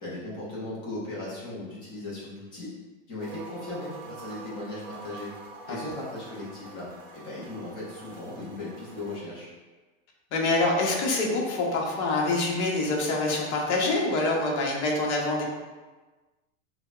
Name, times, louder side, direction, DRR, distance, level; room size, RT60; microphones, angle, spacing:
voice 1, 0.0-2.7 3.1-5.3 5.7-9.5, left 2 dB, 15° left, -7 dB, 0.4 m, -37 dB
sound 1, 3.2-9.2, right 3 dB, 45° right, 0.6 m, -45 dB
voice 2, 10.3-15.4, left 2 dB, 60° left, -2 dB, 0.9 m, -26 dB
4.9 x 2.1 x 2.4 m, 1.2 s
supercardioid pair, 170°, 39 cm